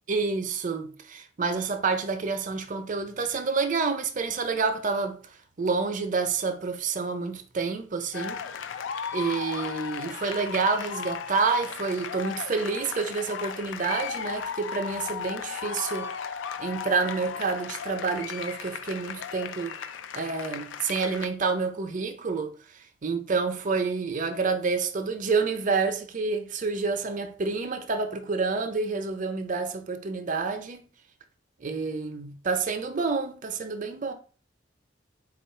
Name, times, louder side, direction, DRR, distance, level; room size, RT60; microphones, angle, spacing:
voice 1, 0.1-5.2 5.6-8.5 9.1-16.1 16.6-19.8 20.1-22.5 23.0-30.9 31.6-34.1, right 4 dB, 45° right, 0.6 m, -28 dB
sound 1, 8.1-21.3, left 7 dB, 75° left, 0.4 m, -36 dB
4.1 x 2.4 x 4.3 m
head